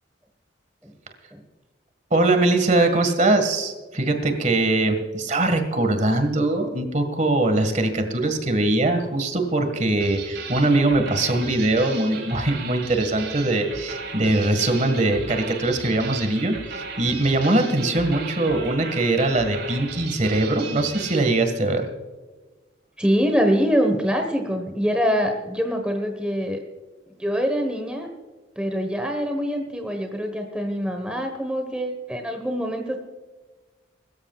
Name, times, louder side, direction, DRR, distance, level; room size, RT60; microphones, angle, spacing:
voice 1, 2.1-21.9, right 2 dB, 40° right, 7 dB, 1.8 m, -22 dB
sound 1, 10.0-21.3, right 4 dB, 60° right, 3.3 m, -36 dB
voice 2, 23.0-26.6 27.1-28.1 28.6-33.0, equal, 5° right, 4 dB, 1.3 m, -24 dB
22.5 x 13.5 x 2.4 m, 1.3 s
head